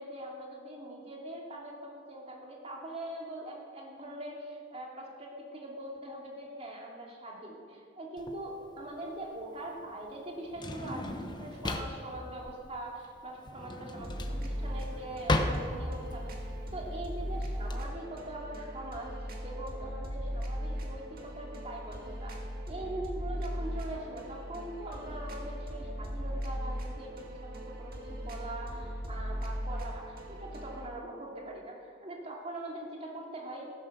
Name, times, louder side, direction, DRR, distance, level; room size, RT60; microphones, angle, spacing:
voice 1, 0.0-16.4 16.7-19.1 19.4-33.7, right 1 dB, 30° right, -2 dB, 2.6 m, -42 dB
Drawer open or close, 8.2-17.8, left 1 dB, 20° left, 0.9 m, -36 dB
sound 1, 14.0-30.9, equal, 50° right, 2.0 m, -38 dB
15.0 x 11.0 x 6.7 m, 2.3 s
head